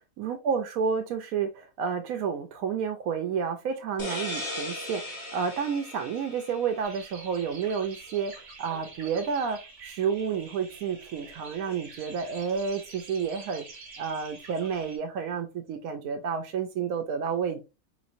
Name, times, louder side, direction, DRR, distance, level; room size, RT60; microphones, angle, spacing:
voice 1, 0.2-13.7 14.0-17.6, right 6 dB, 90° right, 1.1 m, -30 dB
sound 1, 4.0-7.4, left 1 dB, 25° left, 1.0 m, -38 dB
sound 2, 6.8-15.0, right 4 dB, 60° right, 1.3 m, -47 dB
4.9 x 3.0 x 2.5 m
omnidirectional pair, 1.4 m